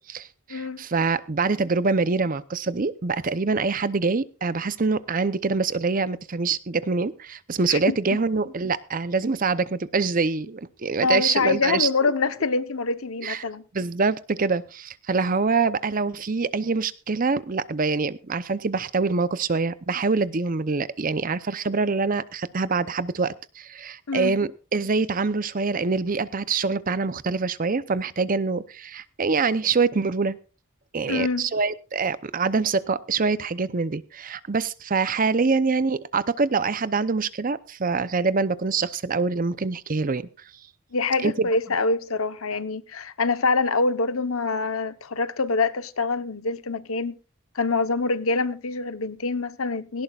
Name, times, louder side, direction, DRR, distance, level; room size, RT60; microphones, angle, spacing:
voice 1, 0.0-12.1 13.2-13.5 13.7-30.4 30.9-40.3 41.2-41.5, right 4 dB, 40° right, 0.7 m, -25 dB
voice 2, 11.0-13.6 24.1-24.4 31.1-31.5 40.9-47.2 47.5-50.0, left 3 dB, 80° left, 1.0 m, -25 dB
18.0 x 17.0 x 2.4 m
head